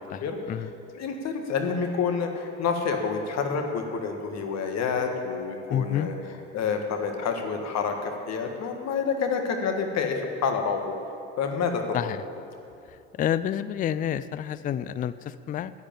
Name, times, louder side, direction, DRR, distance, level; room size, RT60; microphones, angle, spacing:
voice 1, 0.9-6.1 6.5-11.0 11.4-12.1, left 5 dB, 50° left, 4 dB, 1.7 m, -28 dB
voice 2, 5.7-6.1 11.9-12.2 13.2-15.7, left 10 dB, 25° left, 15 dB, 0.4 m, -28 dB
10.0 x 8.5 x 8.8 m, 2.7 s
hypercardioid pair, 65°, 35 cm